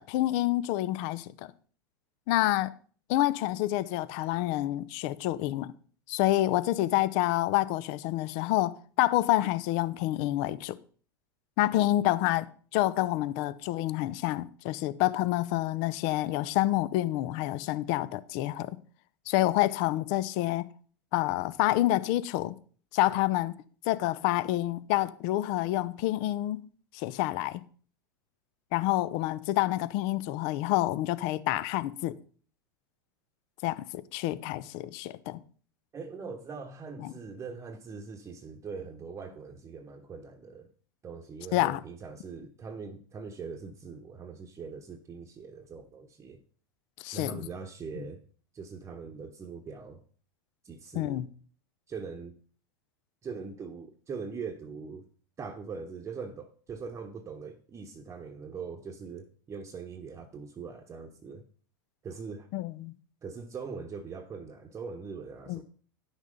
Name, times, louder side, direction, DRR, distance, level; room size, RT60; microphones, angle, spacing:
voice 1, 0.0-1.3 2.3-2.7 3.1-5.7 6.1-10.8 11.6-12.5 12.7-18.8 19.3-20.7 21.1-22.5 22.9-23.5 23.9-26.6 26.9-27.6 28.7-32.2 33.6-35.4 37.0-37.1 41.5-41.8 47.0-47.4 50.9-51.3 62.5-62.9 65.5-65.6, left 16 dB, 55° left, 0.7 m, -28 dB
voice 2, 35.9-40.7 41.0-46.4 47.1-48.2 48.5-50.0 50.6-51.2 51.9-52.3 53.2-55.1 55.4-61.4 62.0-62.5 63.2-65.6, right 5 dB, 25° right, 1.0 m, -41 dB
10.5 x 6.4 x 5.1 m
hypercardioid pair, 95°, 12 cm